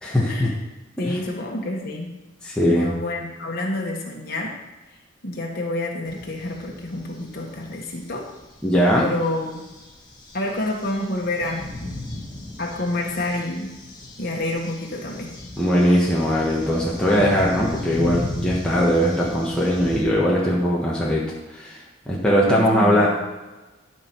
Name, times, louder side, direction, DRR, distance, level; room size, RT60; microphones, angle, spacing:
voice 1, 0.0-0.5 1.0-1.2 2.4-2.9 8.6-9.1 15.6-21.8 22.1-23.1, equal, 5° left, -6 dB, 1.4 m, -20 dB
voice 2, 1.0-2.1 2.6-4.6 5.2-8.3 8.9-9.6 10.3-11.7 12.6-13.8 14.2-15.4 22.4-23.1, left 1 dB, 50° left, -1 dB, 1.5 m, -28 dB
sound 1, 6.1-20.0, left 2 dB, 20° left, 1.5 m, -36 dB
12.5 x 4.6 x 6.1 m, 1.1 s
head